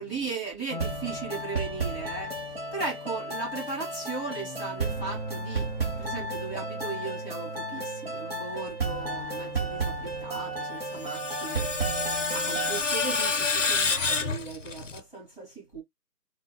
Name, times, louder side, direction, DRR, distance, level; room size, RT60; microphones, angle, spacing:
voice 1, 0.0-5.7 6.0-15.8, right 4 dB, ahead, 1.5 m, -37 dB
sound 1, 0.7-12.8, right 3 dB, 40° right, 0.8 m, -33 dB
Screech, 10.7-15.0, left 4 dB, 50° left, 0.5 m, -28 dB
3.9 x 2.1 x 2.2 m
figure-of-eight pair, 165°, 48 cm